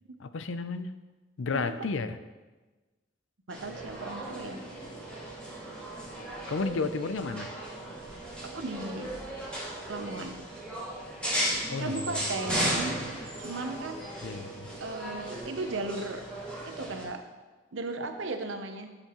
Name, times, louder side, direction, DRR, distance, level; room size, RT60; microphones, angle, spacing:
voice 1, 0.2-0.9 1.4-2.2 6.5-7.5 11.7-12.2 12.5-12.6 14.2-14.7, left 4 dB, 85° left, 11 dB, 0.5 m, -32 dB
sound 1, 3.5-17.0, right 1 dB, 5° left, 2.2 m, -36 dB
voice 2, 3.5-4.6 8.4-9.1 9.9-10.5 11.8-13.0 13.4-14.1 14.8-16.2 16.7-17.2 17.7-19.0, right 3 dB, 90° right, 6 dB, 0.9 m, -36 dB
11.5 x 6.9 x 3.1 m, 1.2 s
head